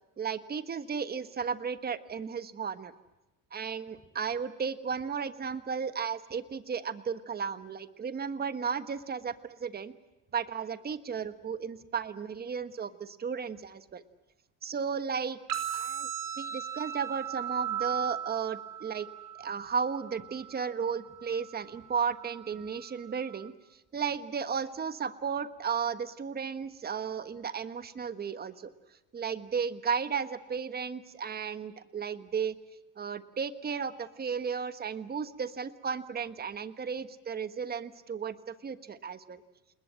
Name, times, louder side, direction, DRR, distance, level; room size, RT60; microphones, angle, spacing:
voice 1, 0.2-2.9 3.5-9.9 10.3-14.0 14.6-15.4 15.7-16.1 16.4-19.1 19.4-28.7 29.1-32.5 33.0-39.4, right 6 dB, 25° right, 12 dB, 1.3 m, -34 dB
sound 1, 15.5-23.5, right 10 dB, 55° right, 4.5 m, -38 dB
29.5 x 20.5 x 7.6 m, 1.0 s
cardioid pair, 140°, 39 cm